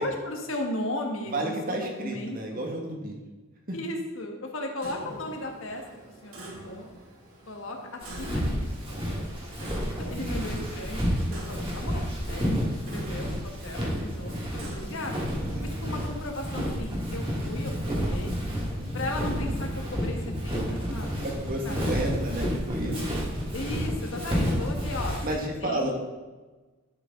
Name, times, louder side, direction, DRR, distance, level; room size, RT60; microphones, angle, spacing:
voice 1, 0.0-2.7 3.7-5.8 6.2-6.9 7.5-9.2 9.6-11.0 11.3-15.3 15.8-18.3 18.9-20.2 20.4-21.1 21.6-22.1 23.5-25.9, left 1 dB, 65° left, 2 dB, 1.5 m, -36 dB
voice 2, 1.3-3.1 18.8-19.0 21.2-23.0 25.2-25.9, right 1 dB, 45° right, 1 dB, 1.7 m, -31 dB
Clock, 4.8-16.1, right 1 dB, 70° right, 2.1 m, -46 dB
Walk footsteps, 8.0-25.4, equal, 25° right, 2.1 m, -30 dB
11.0 x 6.7 x 3.8 m, 1.2 s
head